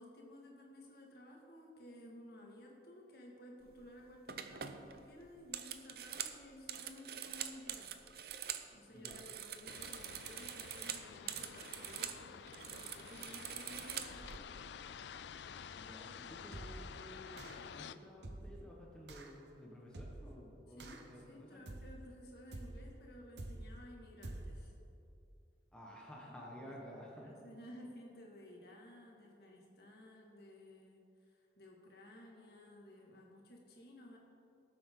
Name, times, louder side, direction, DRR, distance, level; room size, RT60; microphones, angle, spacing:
voice 1, 0.0-8.1 8.4-14.5 20.8-24.8 26.6-34.2, left 1 dB, 55° left, -1 dB, 2.1 m, -56 dB
sound 1, 3.7-3.9 4.3-8.7 9.0-12.2 12.5-14.4, right 9 dB, 55° right, 0.6 m, -45 dB
sound 2, 9.7-18.0, left 7 dB, 75° left, 0.4 m, -50 dB
voice 2, 15.8-21.6 25.7-27.3, equal, 5° left, -3 dB, 1.4 m, -53 dB
sound 3, 16.5-16.9 17.4-17.8 18.2-18.6 19.1-19.4 19.9-20.4 20.8-21.2 21.7-22.1 22.5-22.9 23.4-23.8 24.2-24.7, right 1 dB, 70° right, 1.0 m, -48 dB
19.0 x 7.8 x 3.9 m, 2.7 s
head